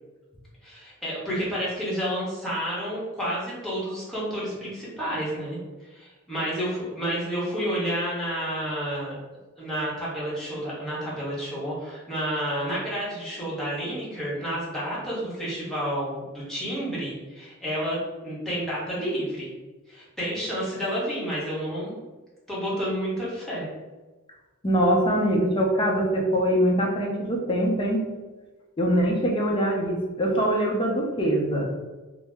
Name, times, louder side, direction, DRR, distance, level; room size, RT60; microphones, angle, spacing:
voice 1, 0.6-5.6 5.9-9.1 9.6-18.0 18.2-19.5 19.9-22.0 22.5-23.7, equal, ahead, -8 dB, 1.0 m, -30 dB
voice 2, 24.6-28.1 28.8-31.7, equal, 25° left, -1 dB, 0.5 m, -23 dB
2.7 x 2.1 x 3.4 m, 1.2 s
head